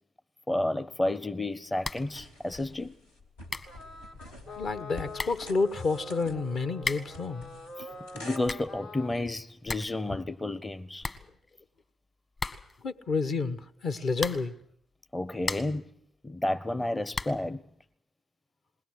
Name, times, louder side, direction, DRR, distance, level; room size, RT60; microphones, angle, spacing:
voice 1, 0.5-2.9 8.1-11.1 15.1-15.9 16.2-17.6, left 1 dB, 15° left, 0.8 m, -31 dB
sound 1, 1.8-2.2 2.4-2.5 3.2-3.3 3.5-3.8 4.8-4.9 5.1-5.5 6.8-7.2 8.2-8.8 9.2-9.3 9.5-10.0 10.3-10.4 10.6-10.7 11.0-11.8 12.4-12.9 14.1-14.6 15.1-15.9 17.1-17.5, left 3 dB, 35° left, 1.8 m, -36 dB
sound 2, 2.1-8.4, left 1 dB, 80° left, 3.2 m, -48 dB
sound 3, 3.7-9.1, left 2 dB, 65° left, 2.1 m, -44 dB
voice 2, 4.6-7.5 10.1-10.2 12.8-14.5, left 4 dB, 50° left, 1.2 m, -30 dB
21.0 x 20.0 x 7.8 m
figure-of-eight pair, 45°, 0 cm